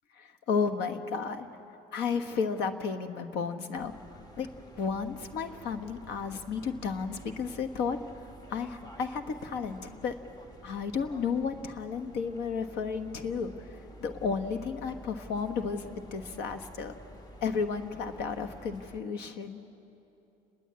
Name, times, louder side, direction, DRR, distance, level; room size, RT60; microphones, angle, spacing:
voice 1, 0.1-1.5 1.9-4.5 4.8-10.2 10.6-16.9 17.4-19.6, left 5 dB, 85° left, 8 dB, 1.3 m, -33 dB
sound 1, 3.7-19.0, equal, 25° left, 1.5 m, -50 dB
29.5 x 11.5 x 8.6 m, 2.9 s
cardioid pair, 110°, 17 cm